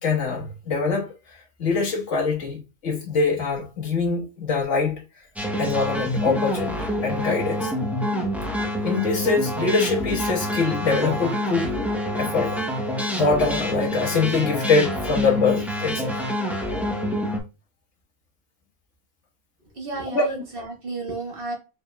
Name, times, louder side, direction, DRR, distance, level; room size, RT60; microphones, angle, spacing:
voice 1, 0.0-1.1 1.6-4.9 5.6-7.7 8.8-11.7 12.1-12.6 13.1-16.1 20.1-20.2, left 4 dB, 60° left, 1.6 m, -23 dB
sound 1, 5.4-17.4, equal, ahead, 0.5 m, -27 dB
voice 2, 19.8-21.5, right 3 dB, 40° right, 1.5 m, -32 dB
5.2 x 3.5 x 2.2 m
omnidirectional pair, 1.5 m